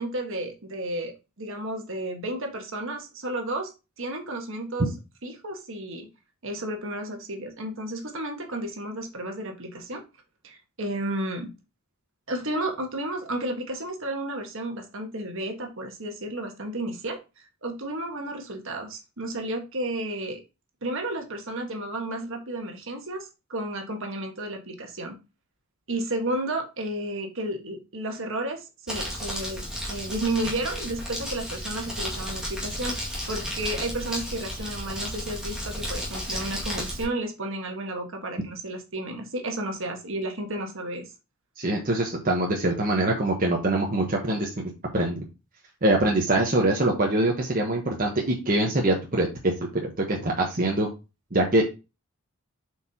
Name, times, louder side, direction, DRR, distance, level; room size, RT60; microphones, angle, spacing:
voice 1, 0.0-3.7 4.0-4.9 5.2-6.1 6.4-10.0 10.4-11.5 12.3-17.2 17.6-20.4 20.8-25.1 25.9-33.0 33.3-41.1, right 1 dB, 60° right, 3 dB, 1.5 m, -32 dB
Crumpling crinkling, 28.9-37.0, equal, 5° right, 2.0 m, -33 dB
voice 2, 41.6-44.6 44.9-45.3 45.8-49.5 49.8-50.9 51.3-51.7, right 1 dB, 40° right, -1 dB, 1.1 m, -24 dB
7.3 x 4.8 x 2.9 m, 0.28 s
head